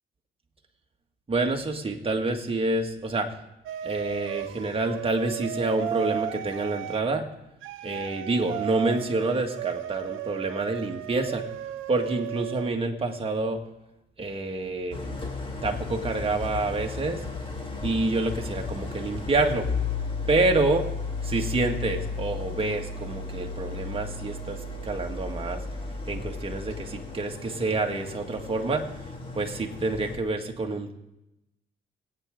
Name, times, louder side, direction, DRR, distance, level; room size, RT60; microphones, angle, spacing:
voice 1, 1.3-3.3 3.8-7.3 7.8-11.4 11.9-13.6 14.2-15.1 15.6-17.2 17.8-19.7 20.3-20.9 21.2-24.6 24.8-25.6 26.1-28.9 29.4-30.9, right 2 dB, 30° right, 2 dB, 1.8 m, -27 dB
sound 1, 3.7-7.0 7.6-12.7, right 11 dB, 85° right, 0.8 m, -35 dB
Idling, 14.9-30.2, left 4 dB, 25° left, 2.5 m, -34 dB
22.0 x 9.1 x 3.8 m, 0.91 s
cardioid pair, 90°, 20 cm